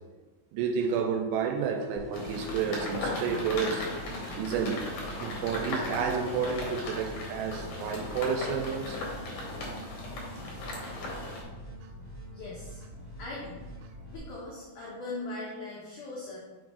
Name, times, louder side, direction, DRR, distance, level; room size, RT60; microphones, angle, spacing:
voice 1, 0.5-3.9 4.4-4.9 5.2-9.0, right 6 dB, 85° right, 5 dB, 2.6 m, -30 dB
sound 1, 2.0-14.2, right 1 dB, 45° right, 1.0 m, -44 dB
sound 2, 2.1-11.4, left 2 dB, 65° left, 2.3 m, -37 dB
voice 2, 12.3-13.6 14.1-16.4, left 2 dB, 85° left, -6 dB, 1.8 m, -40 dB
6.2 x 3.9 x 4.7 m, 1.2 s
omnidirectional pair, 5.2 m